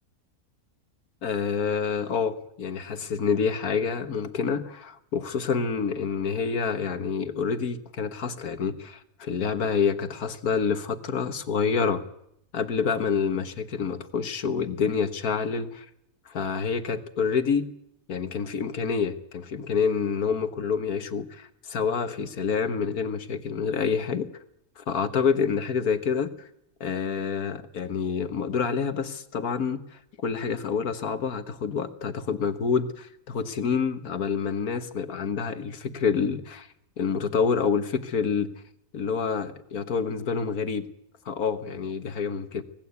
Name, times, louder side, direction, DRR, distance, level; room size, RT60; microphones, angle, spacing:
voice 1, 1.2-12.0 12.5-15.9 16.3-17.7 18.1-24.3 24.8-26.5 26.8-36.7 37.0-38.5 38.9-40.9 41.3-42.6, left 6 dB, 75° left, 10 dB, 1.8 m, -27 dB
25.0 x 19.0 x 8.3 m, 0.77 s
omnidirectional pair, 1.6 m